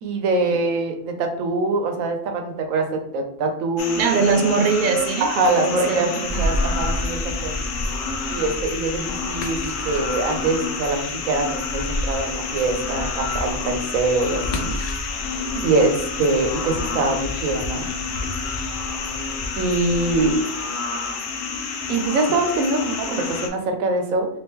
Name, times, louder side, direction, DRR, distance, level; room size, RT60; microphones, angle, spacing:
voice 1, 0.0-4.0 5.2-7.5 8.3-14.7 15.6-17.9 19.6-20.4 21.9-24.3, right 3 dB, 90° right, 4 dB, 1.1 m, -23 dB
sound 1, 3.8-23.5, left 4 dB, 80° left, 1.0 m, -29 dB
voice 2, 4.0-6.4 15.5-15.6, right 5 dB, 60° right, 5 dB, 0.5 m, -22 dB
sound 2, 6.3-20.3, left 1 dB, 65° left, 0.8 m, -31 dB
3.3 x 2.9 x 3.5 m, 0.81 s
omnidirectional pair, 1.4 m